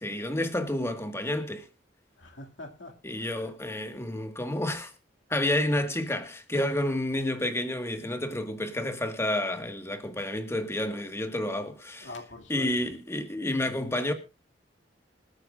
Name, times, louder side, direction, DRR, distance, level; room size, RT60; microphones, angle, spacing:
voice 1, 0.0-1.7 3.0-4.9 5.3-12.1 12.5-14.1, left 1 dB, 15° left, 1.6 m, -30 dB
voice 2, 2.2-3.5 12.0-12.7, left 2 dB, 85° left, 2.3 m, -44 dB
26.0 x 8.9 x 2.5 m
head